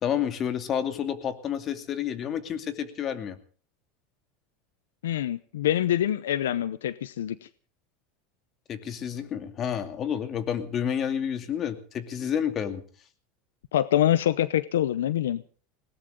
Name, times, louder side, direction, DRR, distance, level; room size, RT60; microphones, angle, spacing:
voice 1, 0.0-3.4 8.7-12.8, left 8 dB, 40° left, 9 dB, 2.6 m, -30 dB
voice 2, 5.0-7.5 13.7-15.4, left 12 dB, 90° left, 17 dB, 0.7 m, -25 dB
20.5 x 18.0 x 3.7 m, 0.42 s
supercardioid pair, 105°, 0 cm